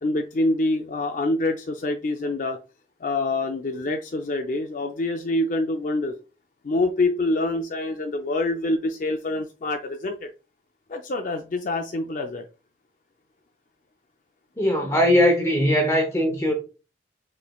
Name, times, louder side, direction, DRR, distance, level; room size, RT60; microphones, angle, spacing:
voice 1, 0.0-2.6 3.0-6.1 6.6-10.3 10.9-12.5, left 2 dB, 45° left, 0.4 m, -26 dB
voice 2, 14.6-16.5, equal, 15° left, 0.7 m, -20 dB
6.6 x 3.2 x 2.3 m
head